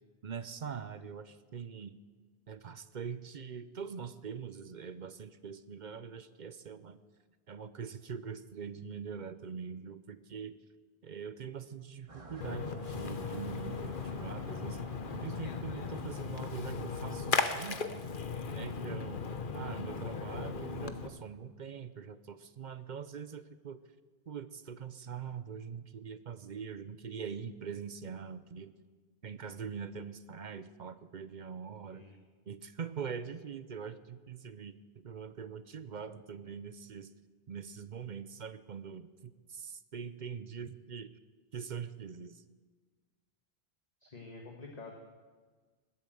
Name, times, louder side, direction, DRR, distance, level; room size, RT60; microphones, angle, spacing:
voice 1, 0.2-2.0 2.5-7.0 7.5-10.6 11.0-14.8 15.1-18.0 18.5-19.3 19.5-23.8 24.3-28.7 29.2-32.1 32.5-34.8 35.0-37.1 37.5-41.1 41.5-42.4, right 6 dB, 50° right, 13 dB, 0.7 m, -43 dB
sound 1, 12.1-17.3, right 2 dB, 30° right, 1.5 m, -52 dB
Splash splatter, 12.4-21.1, left 5 dB, 55° left, 1.1 m, -37 dB
voice 2, 44.0-44.9, left 3 dB, 40° left, 0 dB, 1.6 m, -48 dB
20.0 x 8.6 x 7.7 m, 1.4 s
omnidirectional pair, 1.1 m